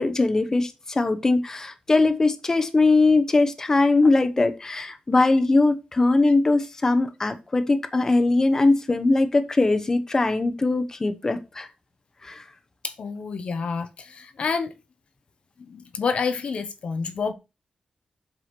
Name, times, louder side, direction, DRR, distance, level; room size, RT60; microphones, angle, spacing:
voice 1, 0.0-11.7 12.2-12.4, left 3 dB, 25° left, 1.0 m, -21 dB
voice 2, 12.8-14.7 15.6-17.3, left 5 dB, 60° left, 0.9 m, -28 dB
7.9 x 4.9 x 6.0 m
wide cardioid pair, 160°, 2 cm